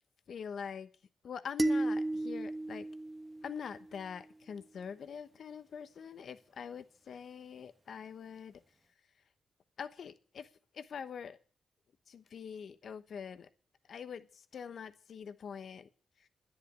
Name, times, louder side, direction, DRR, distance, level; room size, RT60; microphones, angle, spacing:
voice 1, 0.3-0.9 1.2-2.9 3.4-8.6 9.8-10.5 10.7-11.4 12.1-13.5 13.9-15.9, left 7 dB, 70° left, 1.1 m, -44 dB
sound 1, 1.6-4.0, right 2 dB, 30° right, 1.2 m, -34 dB
10.5 x 9.7 x 8.2 m
supercardioid pair, 50°, 0 cm